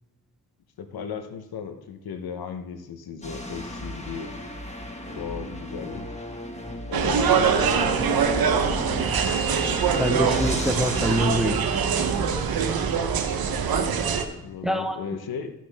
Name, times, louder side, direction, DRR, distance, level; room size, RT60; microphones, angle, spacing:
voice 1, 0.8-4.3 5.1-6.0 6.9-9.0 14.4-15.5, left 6 dB, 75° left, 8 dB, 1.0 m, -35 dB
sound 1, 3.2-11.3, equal, 20° left, 1.6 m, -35 dB
sound 2, 6.9-14.2, right 6 dB, 70° right, 0.9 m, -23 dB
voice 2, 10.0-11.7 14.6-15.0, equal, ahead, 6 dB, 0.8 m, -25 dB
13.5 x 6.1 x 3.5 m, 0.99 s
cardioid pair, 85°, 37 cm